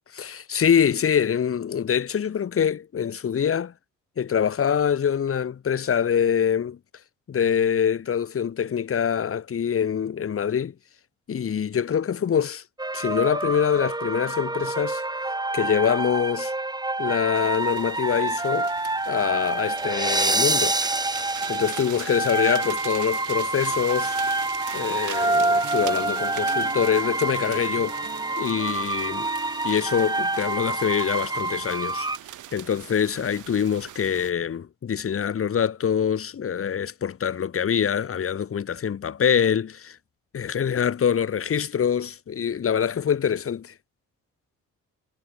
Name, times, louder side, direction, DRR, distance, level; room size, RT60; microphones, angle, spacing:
voice 1, 0.1-3.7 4.2-6.8 7.3-10.7 11.3-12.6 12.9-15.0 15.5-16.5 17.0-18.7 19.1-20.7 21.5-24.2 24.7-28.0 28.4-29.3 29.6-32.1 32.5-40.0 40.3-43.7, left 8 dB, 45° left, 2.3 m, -24 dB
sound 1, 12.8-32.2, right 2 dB, 15° right, 2.7 m, -27 dB
sound 2, 17.3-34.3, right 13 dB, 80° right, 6.2 m, -41 dB
Piano, 25.6-30.9, right 6 dB, 40° right, 4.6 m, -43 dB
cardioid pair, 90°, 30 cm